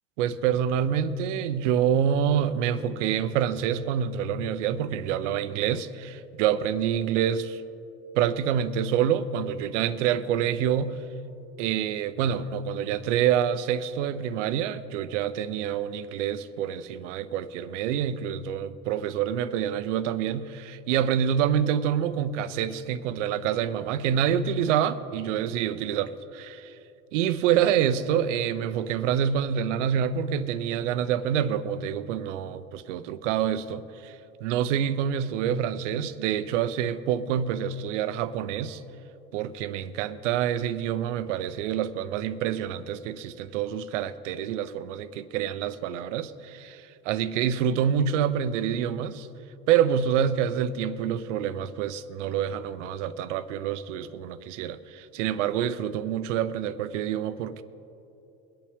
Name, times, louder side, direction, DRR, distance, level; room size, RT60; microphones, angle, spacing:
voice 1, 0.2-7.6 8.1-11.0 11.6-26.7 27.1-34.2 34.4-38.8 39.3-49.3 49.7-57.6, right 9 dB, 75° right, 13 dB, 0.8 m, -27 dB
22.5 x 8.6 x 3.5 m, 2.9 s
hypercardioid pair, 90°, 37 cm